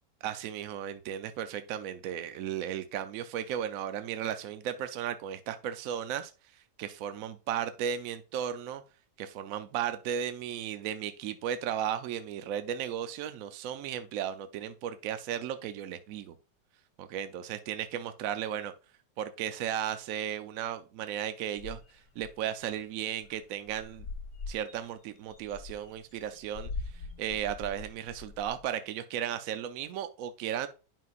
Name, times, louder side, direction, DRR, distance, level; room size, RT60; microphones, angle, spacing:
voice 1, 0.2-6.3 6.8-8.8 9.2-16.3 17.0-18.7 19.2-21.8 22.2-24.0 24.5-26.7 27.2-30.7, right 9 dB, 65° right, 0.9 m, -35 dB
sound 1, 21.6-22.3 22.8-22.9 23.1-23.4 23.7-28.7, left 4 dB, 75° left, 2.2 m, -42 dB
9.3 x 5.8 x 2.4 m
omnidirectional pair, 1.8 m